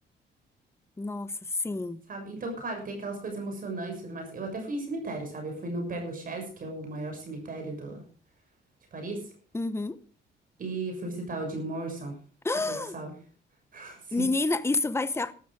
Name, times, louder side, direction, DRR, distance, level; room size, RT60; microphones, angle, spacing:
voice 1, 1.0-1.3 1.6-2.0 9.5-10.0 12.4-12.9 14.1-15.3, left 3 dB, 15° left, 1.0 m, -28 dB
voice 2, 2.1-8.0 8.9-9.3 10.6-12.1 12.7-13.1 13.7-14.3, right 2 dB, 50° right, 6.5 m, -35 dB
13.0 x 13.0 x 5.0 m
cardioid pair, 90°, 19 cm